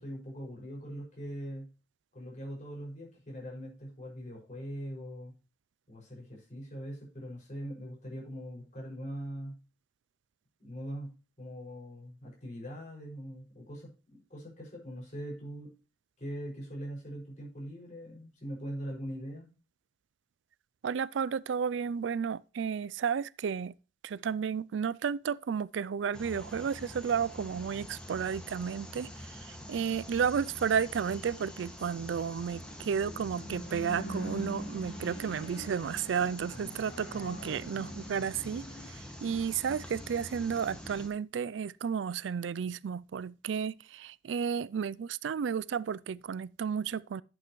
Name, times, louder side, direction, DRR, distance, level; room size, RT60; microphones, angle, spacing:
voice 1, 0.0-1.7 2.1-5.3 5.9-9.6 10.6-15.7 16.2-19.5 36.5-36.8, equal, 40° left, 6.1 m, -42 dB
voice 2, 20.8-23.7 24.0-47.2, right 7 dB, 90° right, 0.4 m, -32 dB
sound 1, 26.1-41.1, equal, 5° left, 1.9 m, -45 dB
sound 2, 26.4-38.9, left 1 dB, 75° left, 2.2 m, -50 dB
11.0 x 8.3 x 3.1 m
head